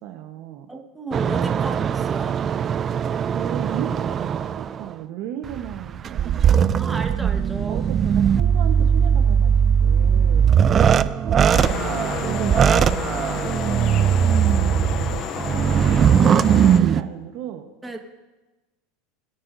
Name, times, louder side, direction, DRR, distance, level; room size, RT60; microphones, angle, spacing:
voice 1, 0.0-0.7 3.2-7.0 7.7-9.5 9.8-10.4 10.7-14.9 15.6-17.6, right 11 dB, 60° right, 6 dB, 1.1 m, -35 dB
voice 2, 0.7-2.4 6.8-7.9 15.0-15.8 17.8-18.0, right 2 dB, 10° right, 2 dB, 1.5 m, -34 dB
sound 1, 1.1-4.8 5.4-17.0, right 8 dB, 30° right, 0.4 m, -19 dB
sound 2, 11.5-16.8, left 8 dB, 45° left, 0.7 m, -31 dB
22.5 x 10.0 x 2.7 m, 1.1 s
supercardioid pair, 120°, 0 cm